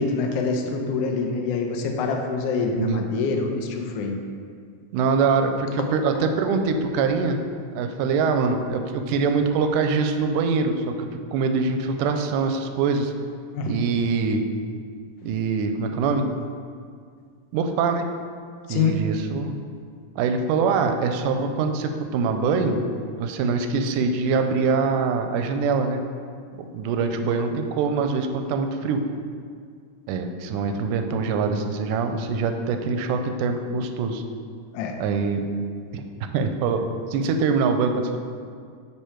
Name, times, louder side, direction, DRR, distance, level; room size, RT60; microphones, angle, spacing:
voice 1, 0.0-4.2 5.8-5.9 13.5-13.8 18.7-19.0 34.7-35.0, left 4 dB, 80° left, 3 dB, 1.4 m, -25 dB
voice 2, 4.9-7.4 7.8-13.1 13.7-14.4 15.2-16.3 17.5-18.1 18.7-19.6 20.2-26.0 26.6-29.0 30.1-34.2 35.0-35.5 35.9-36.8 37.1-38.2, right 4 dB, 85° right, 6 dB, 2.1 m, -24 dB
9.8 x 3.4 x 4.4 m, 2.1 s
omnidirectional pair, 3.5 m